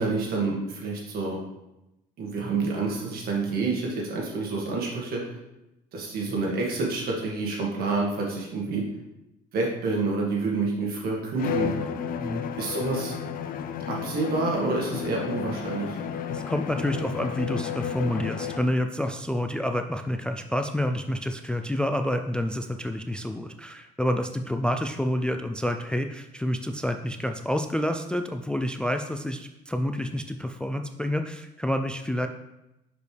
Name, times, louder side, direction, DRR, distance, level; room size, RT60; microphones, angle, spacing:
voice 1, 0.0-1.4 2.2-5.2 5.9-8.8 9.5-11.7 12.5-13.2 13.9-16.0, right 3 dB, 65° right, -1 dB, 1.9 m, -28 dB
Bowed string instrument, 11.4-18.8, left 8 dB, 60° left, 0.5 m, -32 dB
voice 2, 16.3-32.3, left 1 dB, 5° left, 6 dB, 0.3 m, -28 dB
6.2 x 5.2 x 3.3 m, 0.92 s
cardioid pair, 110°, 17 cm